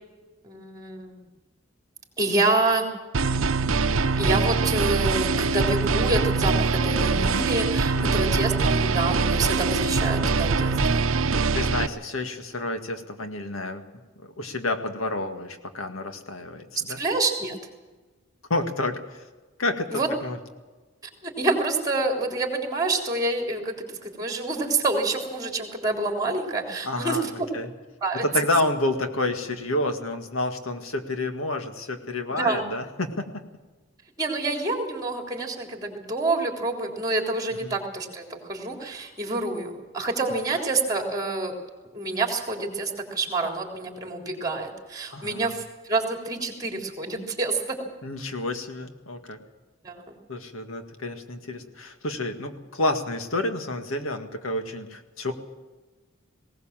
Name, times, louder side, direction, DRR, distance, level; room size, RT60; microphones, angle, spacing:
voice 1, 0.4-1.2 2.2-2.9 4.2-11.0 16.8-17.6 19.9-20.1 21.2-27.3 28.0-28.2 32.3-32.6 34.2-41.5 41.9-47.8 49.8-50.1, right 2 dB, 20° right, 2 dB, 3.6 m, -27 dB
sound 1, 3.1-11.9, right 4 dB, 75° right, 0.8 m, -23 dB
voice 2, 11.5-13.8 14.4-17.0 18.5-19.2 19.6-20.4 26.8-27.7 28.2-33.2 37.5-37.7 45.1-45.5 48.0-49.4 50.3-55.3, left 2 dB, 80° left, 6 dB, 2.0 m, -29 dB
19.5 x 18.0 x 7.5 m, 1.2 s
head